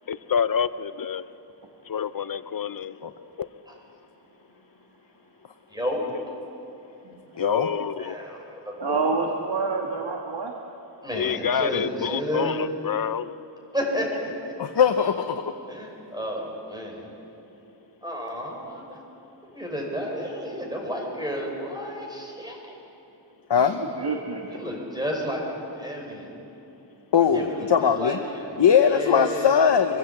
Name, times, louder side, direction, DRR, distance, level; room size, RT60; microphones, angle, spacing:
voice 1, 0.1-1.2 1.9-2.9 3.4-3.5 7.4-8.2 11.1-13.3, left 7 dB, 50° left, 15 dB, 0.5 m, -27 dB
voice 2, 5.7-6.0 8.0-9.0 11.0-12.6 13.7-14.5 15.7-17.1 18.0-19.0 19.4-22.7 24.5-26.3 27.2-29.5, equal, 10° right, 0 dB, 4.5 m, -32 dB
voice 3, 7.4-7.7 14.6-15.4 23.5-23.8 27.1-28.2 28.6-30.0, left 7 dB, 65° left, 5 dB, 0.9 m, -20 dB
voice 4, 8.8-10.6 23.6-24.6, right 4 dB, 65° right, 0 dB, 1.6 m, -28 dB
23.5 x 16.0 x 7.9 m, 2.9 s
wide cardioid pair, 120°, 44 cm